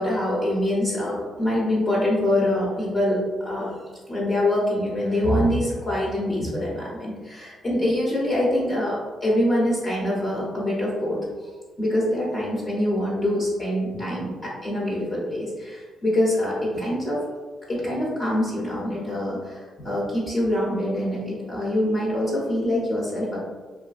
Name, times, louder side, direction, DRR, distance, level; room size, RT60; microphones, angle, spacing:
voice 1, 0.0-3.8 4.1-17.2 17.7-23.4, left 1 dB, 30° left, -5 dB, 0.7 m, -25 dB
2.6 x 2.4 x 2.4 m, 1.4 s
cardioid pair, 90°, 0 cm